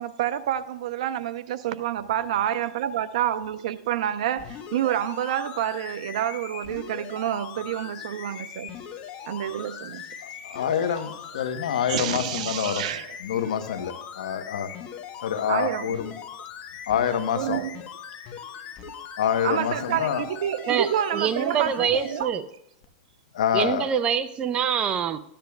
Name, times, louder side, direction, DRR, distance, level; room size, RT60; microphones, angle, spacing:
voice 1, 0.0-8.8 9.2-10.1 11.9-13.1 15.5-15.9 17.3-17.8 18.8-18.9 19.4-22.3, right 11 dB, 70° right, 0.7 m, -28 dB
sound 1, 4.4-22.2 22.8-22.9, left 8 dB, 35° left, 1.1 m, -40 dB
voice 2, 10.2-12.8 13.2-14.7 15.2-16.1 16.9-17.6 19.2-20.3 23.3-23.9, left 8 dB, 80° left, 1.0 m, -26 dB
voice 3, 20.7-22.5 23.5-25.2, right 8 dB, 25° right, 0.6 m, -25 dB
13.5 x 10.0 x 2.3 m
hypercardioid pair, 130°, 4 cm